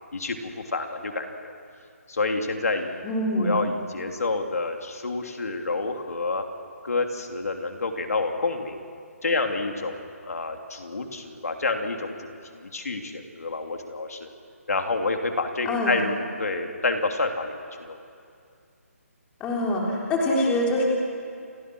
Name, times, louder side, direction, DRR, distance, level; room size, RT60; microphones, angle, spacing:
voice 1, 0.1-1.5 2.1-3.0 3.4-6.4 6.8-8.8 9.2-12.3 12.6-14.3 14.7-18.0, left 3 dB, 75° left, 4 dB, 3.2 m, -28 dB
voice 2, 3.0-3.5 15.7-15.9 19.4-20.8, left 1 dB, 10° left, -2 dB, 3.6 m, -24 dB
29.5 x 23.5 x 6.4 m, 2.4 s
hypercardioid pair, 165°, 8 cm